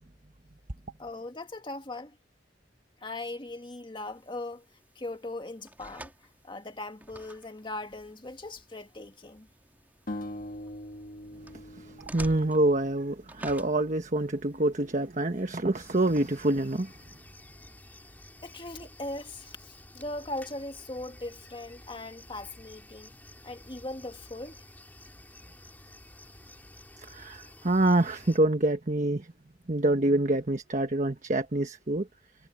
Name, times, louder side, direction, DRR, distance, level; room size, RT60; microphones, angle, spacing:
voice 1, 1.0-2.2 3.0-4.7 5.0-9.5 18.4-23.2 23.4-24.7, left 2 dB, 25° left, 1.7 m, -39 dB
sound 1, 4.0-15.9, right 1 dB, 10° right, 2.6 m, -51 dB
sound 2, 10.1-13.2, left 1 dB, 50° left, 1.7 m, -42 dB
voice 2, 11.5-16.9 27.0-29.3 29.7-32.1, right 2 dB, 45° right, 1.3 m, -26 dB
sound 3, 15.7-28.4, left 1 dB, 10° left, 2.9 m, -51 dB
head